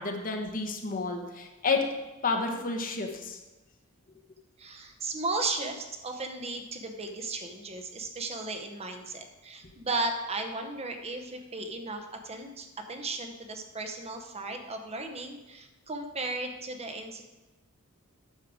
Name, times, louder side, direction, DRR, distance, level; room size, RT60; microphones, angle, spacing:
voice 1, 0.0-1.9 2.2-3.4, left 4 dB, 40° left, 4 dB, 1.1 m, -30 dB
voice 2, 4.6-17.3, right 2 dB, 30° right, 5 dB, 0.8 m, -35 dB
9.5 x 6.6 x 4.9 m, 1.1 s
head